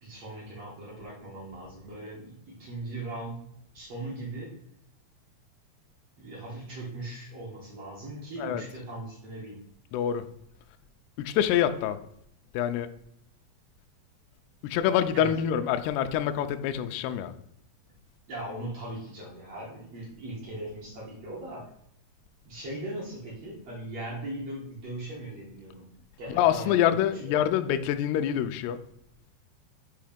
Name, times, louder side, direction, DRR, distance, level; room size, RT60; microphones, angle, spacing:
voice 1, 0.0-3.4 3.7-4.5 6.2-9.6 15.1-15.4 18.3-21.7 22.4-25.9 26.2-27.3, right 1 dB, 80° right, -4 dB, 1.4 m, -39 dB
voice 2, 9.9-10.3 11.2-12.0 12.5-12.9 14.6-17.3 26.3-28.8, left 10 dB, 85° left, 8 dB, 2.3 m, -26 dB
7.7 x 2.9 x 5.0 m, 0.71 s
omnidirectional pair, 5.1 m